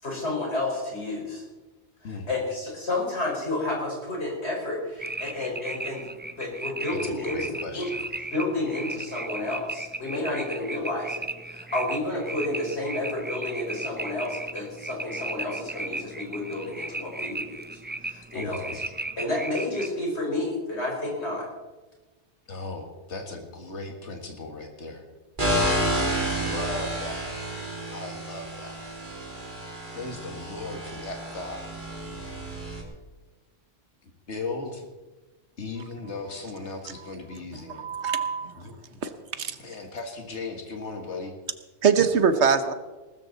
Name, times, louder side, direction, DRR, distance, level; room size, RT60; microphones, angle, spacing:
voice 1, 0.0-1.4 2.0-6.0 6.4-7.9 8.3-18.8 19.2-21.5, left 2 dB, 75° left, -2 dB, 5.2 m, -31 dB
sound 1, 5.0-19.9, right 2 dB, 15° right, 0.4 m, -36 dB
voice 2, 6.9-8.0 18.3-18.8 22.5-25.0 26.4-27.3 27.9-28.8 29.9-31.7 34.3-34.9 35.6-37.8 38.6-39.0 39.6-41.3, left 3 dB, 90° left, 4 dB, 2.0 m, -37 dB
sound 2, 25.4-32.8, right 1 dB, 45° right, 3.1 m, -30 dB
voice 3, 37.5-38.7 39.0-39.1 39.4-39.6 41.8-42.7, right 6 dB, 80° right, 10 dB, 1.3 m, -23 dB
19.5 x 13.5 x 4.1 m, 1.2 s
omnidirectional pair, 1.1 m